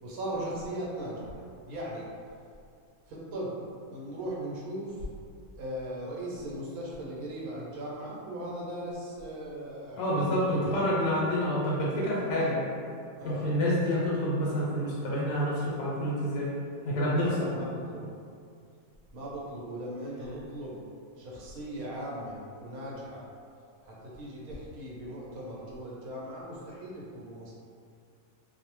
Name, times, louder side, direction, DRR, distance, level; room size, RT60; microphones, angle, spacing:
voice 1, 0.0-2.1 3.1-3.5 3.9-5.1 5.6-10.8 13.1-13.5 17.2-18.2 19.1-20.8 21.2-23.2 23.8-27.5, right 1 dB, 85° right, -5 dB, 1.1 m, -38 dB
voice 2, 10.0-12.6 13.2-16.5 16.8-17.4, equal, 80° left, -6 dB, 1.1 m, -28 dB
2.7 x 2.0 x 3.0 m, 2.3 s
omnidirectional pair, 1.5 m